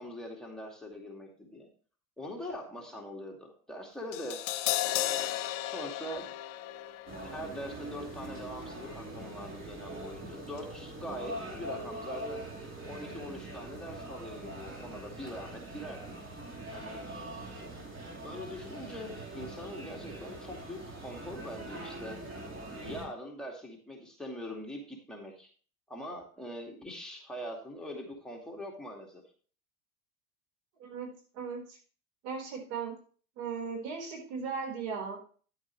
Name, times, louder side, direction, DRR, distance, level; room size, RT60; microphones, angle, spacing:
voice 1, 0.0-1.7 2.2-4.4 4.8-6.3 7.2-12.4 12.9-16.2 16.7-17.0 18.2-22.2 22.7-25.5 25.9-29.2, equal, ahead, -2 dB, 2.2 m, -43 dB
Crash cymbal, 4.1-10.3 10.5-10.7, left 14 dB, 50° left, 0.9 m, -36 dB
sound 1, 7.1-23.1, right 1 dB, 30° right, 3.1 m, -43 dB
voice 2, 30.8-31.8 32.2-32.9 33.4-35.2, right 5 dB, 70° right, 2 dB, 4.4 m, -37 dB
10.5 x 8.6 x 3.1 m, 0.41 s
hypercardioid pair, 105°, 42 cm